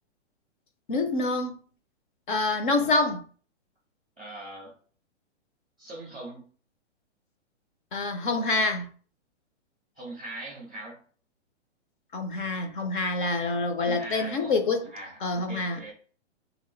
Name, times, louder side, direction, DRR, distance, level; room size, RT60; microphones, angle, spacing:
voice 1, 0.9-1.6 2.3-3.2 7.9-8.9 12.1-14.9 15.2-15.9, left 3 dB, 45° left, 0.7 m, -26 dB
voice 2, 4.2-4.8 5.8-6.5 9.9-11.0 13.8-15.9, right 1 dB, 5° right, 0.3 m, -41 dB
3.6 x 2.9 x 4.3 m
hypercardioid pair, 160°, 36 cm